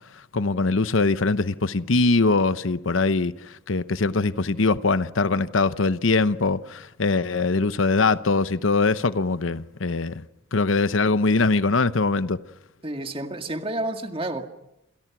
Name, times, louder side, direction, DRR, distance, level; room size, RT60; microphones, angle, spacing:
voice 1, 0.3-3.3 3.7-10.2 10.5-12.4, left 3 dB, 75° left, 0.9 m, -22 dB
voice 2, 12.8-14.5, right 1 dB, 25° right, 2.0 m, -30 dB
28.5 x 27.0 x 6.1 m
head